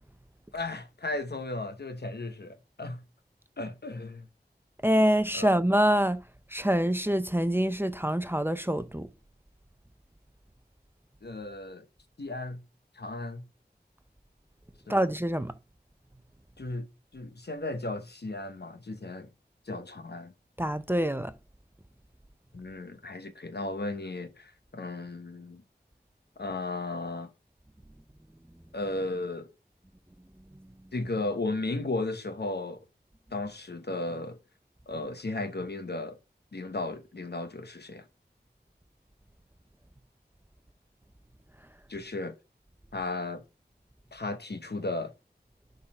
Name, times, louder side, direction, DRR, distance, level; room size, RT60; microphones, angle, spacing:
voice 1, 0.5-3.0 3.6-4.3 5.3-5.5 11.2-11.8 12.2-12.6 12.9-13.5 14.9-15.1 16.6-16.9 17.1-19.3 19.7-20.3 22.5-25.6 26.4-27.3 28.7-29.5 30.9-32.8 33.3-34.4 34.9-36.2 36.5-38.1 41.9-42.4 42.9-43.4 44.1-45.1, left 2 dB, 70° left, 0.9 m, -35 dB
voice 2, 4.8-6.2 6.5-9.1 14.9-15.5 20.6-21.3, equal, 10° right, 0.6 m, -25 dB
6.4 x 3.9 x 4.3 m
wide cardioid pair, 40°, 18 cm